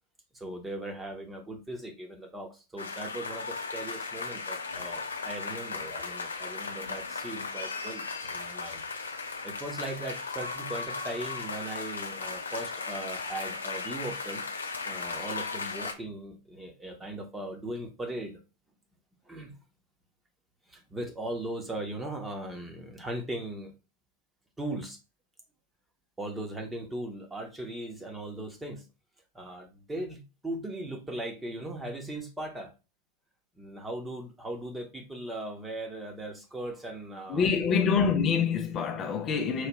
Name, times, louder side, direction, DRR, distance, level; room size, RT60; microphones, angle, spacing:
voice 1, 0.3-8.8 9.4-14.4 14.8-18.4 19.2-19.6 20.7-23.7 24.6-25.0 26.2-28.8 29.3-32.7 33.6-38.1, right 1 dB, 10° right, 1.1 m, -38 dB
sound 1, 2.8-15.9, left 4 dB, 75° left, 0.6 m, -36 dB
voice 2, 37.3-39.7, left 6 dB, 30° left, 0.5 m, -26 dB
4.8 x 2.8 x 3.0 m
figure-of-eight pair, 90°, 0 cm